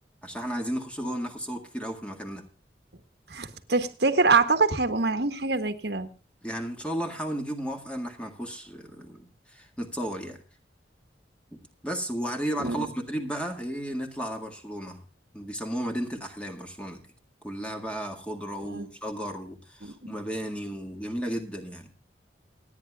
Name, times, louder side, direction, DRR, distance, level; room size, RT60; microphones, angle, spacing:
voice 1, 0.2-2.4 6.4-10.4 11.5-15.0 15.3-17.0 17.4-21.9, equal, 5° left, 3 dB, 1.8 m, -34 dB
voice 2, 3.3-6.1 12.6-12.9 18.6-18.9 19.8-20.1, right 4 dB, 65° right, 9 dB, 1.5 m, -25 dB
28.5 x 9.7 x 2.3 m, 0.34 s
head